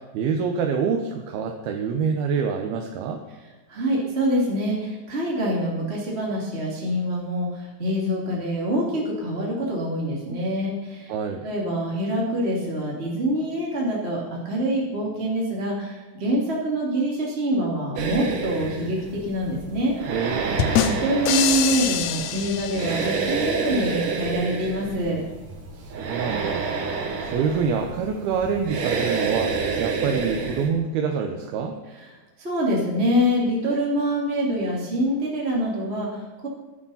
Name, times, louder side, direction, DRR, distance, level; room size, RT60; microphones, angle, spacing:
voice 1, 0.0-3.2 11.1-11.5 20.1-20.8 25.8-26.7 27.2-31.8, right 6 dB, 80° right, 3 dB, 2.9 m, -26 dB
voice 2, 3.7-11.1 11.4-19.9 20.8-25.2 31.9-32.1 32.4-36.5, equal, 20° right, -4 dB, 2.4 m, -25 dB
sound 1, 18.0-30.7, right 5 dB, 60° right, 3.1 m, -29 dB
sound 2, 20.6-23.4, left 9 dB, 85° left, 1.7 m, -25 dB
16.0 x 12.0 x 5.7 m, 1.2 s
omnidirectional pair, 4.5 m